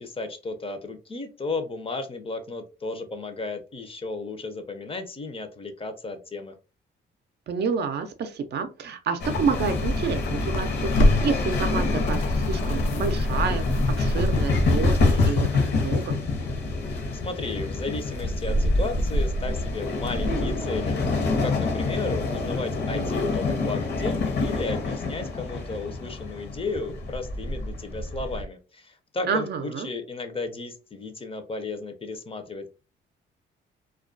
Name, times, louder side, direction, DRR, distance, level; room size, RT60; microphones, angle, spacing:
voice 1, 0.0-6.6 17.2-21.0 21.4-32.7, left 3 dB, 30° left, 7 dB, 0.5 m, -34 dB
voice 2, 7.5-16.2 29.3-29.9, right 5 dB, 55° right, 8 dB, 0.5 m, -29 dB
sound 1, 9.2-15.3, left 1 dB, 85° left, 0.5 m, -26 dB
sound 2, 9.2-28.4, left 3 dB, 60° left, 0.8 m, -27 dB
2.3 x 2.2 x 2.5 m, 0.31 s
cardioid pair, 90°, 20 cm